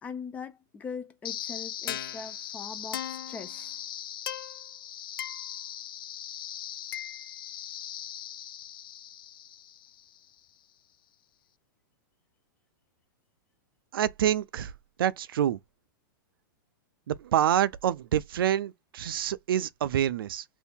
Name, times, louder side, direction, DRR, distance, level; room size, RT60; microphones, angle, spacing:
voice 1, 0.0-3.7, left 5 dB, 15° left, 0.4 m, -41 dB
sound 1, 1.2-10.3, left 10 dB, 80° left, 0.4 m, -39 dB
voice 2, 13.9-14.7 15.0-15.6 17.1-20.4, right 10 dB, 85° right, 0.4 m, -27 dB
2.7 x 2.6 x 3.5 m
supercardioid pair, 155°, 11 cm